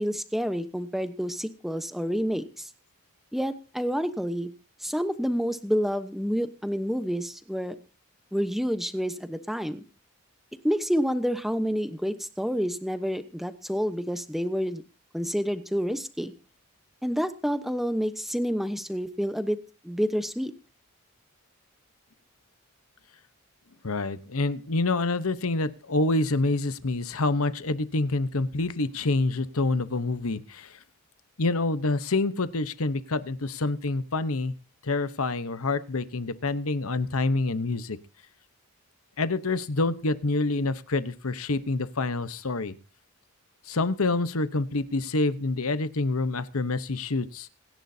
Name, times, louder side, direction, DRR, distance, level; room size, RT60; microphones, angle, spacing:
voice 1, 0.0-2.7 3.3-4.5 4.8-7.7 8.3-9.8 10.6-14.8 15.1-16.3 17.0-19.6 19.8-20.5, equal, ahead, 9 dB, 1.0 m, -28 dB
voice 2, 23.8-30.8 31.4-34.5 34.8-38.0 39.2-42.8 43.7-47.5, left 2 dB, 75° left, 13 dB, 1.0 m, -27 dB
26.5 x 11.0 x 2.8 m, 0.34 s
head